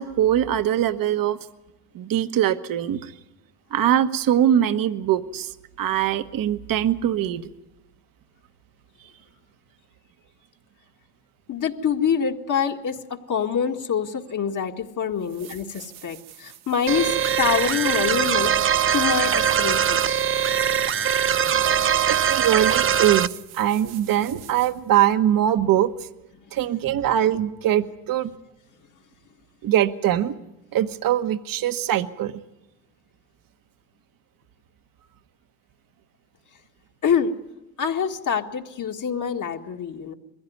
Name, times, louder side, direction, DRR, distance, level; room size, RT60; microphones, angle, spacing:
voice 1, 0.0-1.4 1.9-3.1 3.7-7.5 22.1-25.9 26.5-28.3 29.6-30.3 30.7-32.4, right 11 dB, 55° right, 11 dB, 1.3 m, -22 dB
voice 2, 11.5-18.5 18.9-20.2 37.0-37.3 37.8-40.1, left 7 dB, 50° left, 3 dB, 1.8 m, -25 dB
sound 1, 14.7-14.8 15.2-24.9 27.7-27.8, right 12 dB, 85° right, 1.8 m, -47 dB
sound 2, 16.9-23.3, right 8 dB, 30° right, 0.7 m, -21 dB
22.0 x 15.5 x 9.4 m, 0.97 s
supercardioid pair, 75°, 40 cm